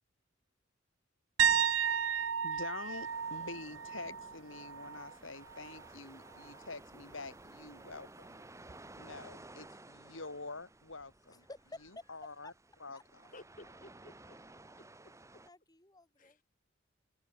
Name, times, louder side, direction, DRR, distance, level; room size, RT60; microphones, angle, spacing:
sound 1, 1.4-5.1 5.5-5.8 8.7-8.8, right 8 dB, 80° right, 1.0 m, -33 dB
voice 1, 2.0-8.4 8.9-11.4 12.1-12.5 12.8-13.3, left 3 dB, 80° left, 5.1 m, -47 dB
sound 2, 2.8-15.5, right 2 dB, 15° right, 1.7 m, -55 dB
voice 2, 11.3-12.5 12.9-13.3 13.6-13.7 14.6-14.9 15.4-16.4, left 2 dB, 20° left, 4.8 m, -53 dB
voice 3, 13.3-14.3 14.8-15.1 16.2-16.4, left 2 dB, 45° left, 6.8 m, -55 dB
open air
head